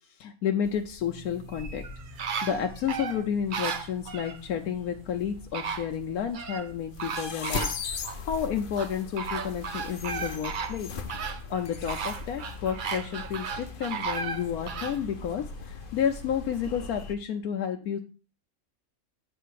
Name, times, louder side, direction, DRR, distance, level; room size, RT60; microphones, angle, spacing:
voice 1, 0.2-1.8 2.4-10.9 11.5-18.0, left 8 dB, 75° left, 3 dB, 1.2 m, -31 dB
sound 1, 0.6-17.2, left 4 dB, 50° left, 0.6 m, -40 dB
sound 2, 1.0-10.9, right 6 dB, 10° right, 0.9 m, -55 dB
sound 3, 1.5-4.4 5.2-5.3 5.5-6.7 7.0-8.2 8.8-15.0 15.5-15.6, right 6 dB, 55° right, 0.5 m, -35 dB
8.5 x 3.4 x 6.4 m, 0.35 s
omnidirectional pair, 1.6 m